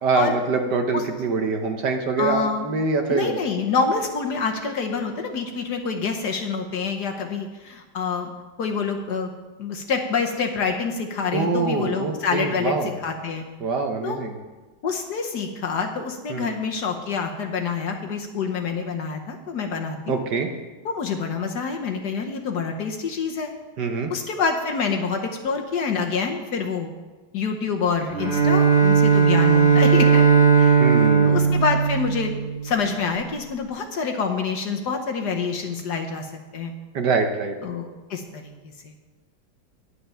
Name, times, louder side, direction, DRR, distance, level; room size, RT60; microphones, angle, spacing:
voice 1, 0.0-3.4 11.3-12.9 13.6-14.4 16.3-16.5 20.1-20.5 23.8-24.1 30.8-31.6 36.9-37.6, right 4 dB, 60° right, 4 dB, 1.4 m, -24 dB
voice 2, 2.2-2.7 3.1-8.3 8.6-9.3 9.6-13.4 14.0-14.2 14.8-20.2 20.8-23.5 24.1-26.9 27.3-30.2 30.6-30.8 31.2-32.3 32.6-36.7 37.6-38.5 38.8-38.9, left 5 dB, 60° left, 3 dB, 1.3 m, -27 dB
Bowed string instrument, 28.1-32.7, right 6 dB, 35° right, 2.1 m, -17 dB
10.0 x 10.0 x 5.6 m, 1.2 s
omnidirectional pair, 2.3 m